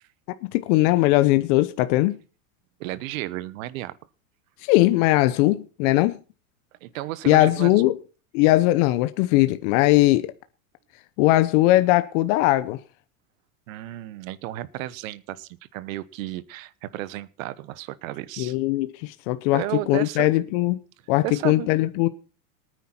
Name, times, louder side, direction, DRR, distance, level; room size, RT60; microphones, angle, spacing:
voice 1, 0.5-2.2 4.6-6.2 7.3-8.0 8.3-10.3 11.2-12.8 18.4-19.6 19.9-20.8 21.1-22.1, left 17 dB, 60° left, 0.9 m, -20 dB
voice 2, 2.8-4.0 6.8-7.7 13.7-18.6 19.5-20.3 21.2-21.7, right 15 dB, 70° right, 1.1 m, -33 dB
19.5 x 9.4 x 4.4 m
supercardioid pair, 125°, 42 cm